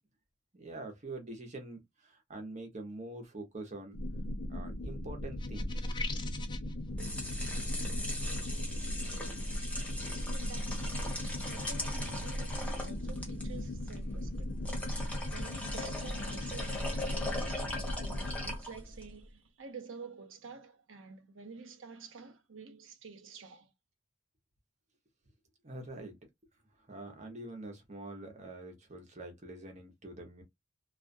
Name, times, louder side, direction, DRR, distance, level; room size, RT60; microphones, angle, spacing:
voice 1, 0.5-4.0 4.5-6.0 25.6-26.2 26.9-30.4, right 2 dB, 35° right, 0.8 m, -45 dB
sound 1, 3.9-18.6, left 1 dB, 80° left, 0.6 m, -38 dB
sound 2, 5.4-6.7, left 5 dB, 25° left, 0.3 m, -41 dB
sound 3, 6.8-19.1, left 1 dB, 5° left, 0.7 m, -40 dB
voice 2, 10.3-14.5 15.3-23.7, right 4 dB, 70° right, 0.7 m, -49 dB
2.4 x 2.3 x 2.5 m
head